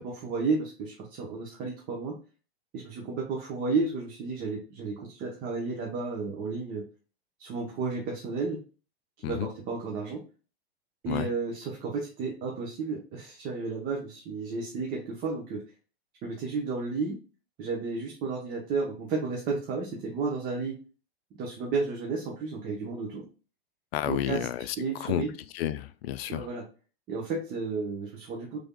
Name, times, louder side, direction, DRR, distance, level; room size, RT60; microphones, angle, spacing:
voice 1, 0.0-2.2 2.7-6.8 7.4-8.6 9.2-10.2 11.0-15.6 16.2-17.2 17.6-20.7 21.4-23.2 24.0-24.5 24.8-25.3 26.3-26.6 27.1-28.6, right 4 dB, 30° right, 0 dB, 0.8 m, -32 dB
voice 2, 23.9-25.2 25.5-26.5, left 12 dB, 70° left, 13 dB, 0.5 m, -31 dB
5.1 x 3.4 x 2.2 m, 0.36 s
supercardioid pair, 145°, 32 cm